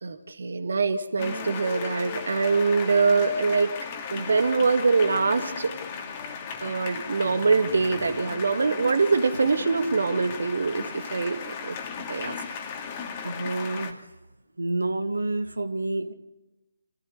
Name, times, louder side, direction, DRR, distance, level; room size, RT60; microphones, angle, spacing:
voice 1, 0.0-3.8 4.1-5.7 6.6-11.8 12.1-12.3, right 4 dB, 60° right, 7 dB, 1.8 m, -24 dB
sound 1, 1.2-13.9, left 6 dB, 25° left, 2.6 m, -36 dB
voice 2, 13.2-14.0 14.6-16.1, right 2 dB, 80° right, 7 dB, 1.9 m, -28 dB
27.5 x 15.5 x 8.3 m, 1.0 s
figure-of-eight pair, 145°, 0 cm